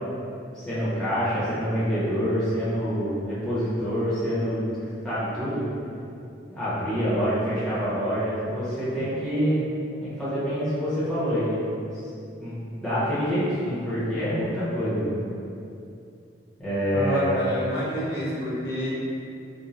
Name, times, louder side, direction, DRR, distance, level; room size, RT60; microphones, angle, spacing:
voice 1, 0.5-4.6 5.0-5.6 6.5-9.6 10.0-11.7 12.4-15.1 16.6-17.3, equal, 5° left, -12 dB, 0.7 m, -26 dB
voice 2, 16.9-18.9, right 1 dB, 60° left, -8 dB, 0.7 m, -28 dB
2.5 x 2.0 x 3.0 m, 2.6 s
head